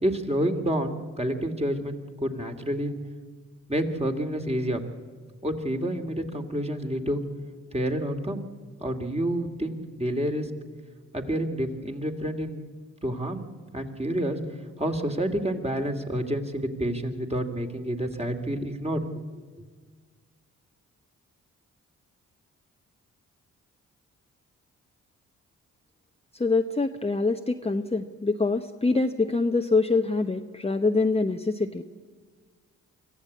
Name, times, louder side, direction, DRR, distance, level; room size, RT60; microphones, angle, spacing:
voice 1, 0.0-2.9 3.7-4.8 5.4-7.2 7.7-8.4 8.8-10.5 11.1-12.7 13.0-13.4 13.7-14.4 14.8-19.0, right 1 dB, 20° right, 5 dB, 2.6 m, -28 dB
voice 2, 26.4-31.8, left 3 dB, 15° left, 5 dB, 0.9 m, -25 dB
24.5 x 14.5 x 8.5 m, 1.5 s
supercardioid pair, 45°, 34 cm